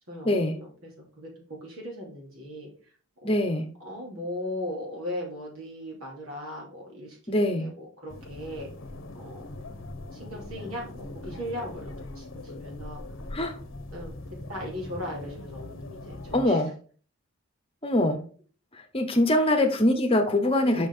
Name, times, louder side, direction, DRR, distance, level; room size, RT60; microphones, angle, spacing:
voice 1, 0.1-0.9 1.2-2.7 3.2-3.5 3.8-8.7 9.2-9.4 10.1-11.8 12.1-13.0 13.9-14.2 14.5-16.6 19.4-19.6 20.6-20.9, left 1 dB, 75° right, -2 dB, 2.9 m, -38 dB
voice 2, 3.2-3.7 7.3-7.6 13.3-13.5 16.3-16.7 17.8-18.2 18.7-20.9, left 1 dB, 25° left, 5 dB, 1.0 m, -23 dB
sound 1, 8.1-16.4, left 2 dB, 60° left, 0.8 m, -41 dB
6.0 x 5.2 x 3.7 m, 0.40 s
head